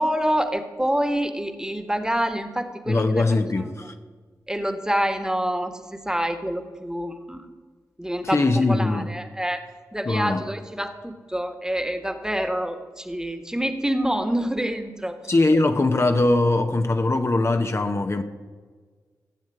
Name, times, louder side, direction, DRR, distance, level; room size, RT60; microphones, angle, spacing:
voice 1, 0.0-3.2 3.7-3.9 4.5-7.5 8.0-9.6 9.9-15.3, equal, 10° right, 8 dB, 1.5 m, -27 dB
voice 2, 2.9-3.9 8.2-9.1 10.1-10.4 15.3-18.2, left 2 dB, 40° left, 6 dB, 0.8 m, -21 dB
16.5 x 7.3 x 4.8 m, 1.5 s
cardioid pair, 45°, 7 cm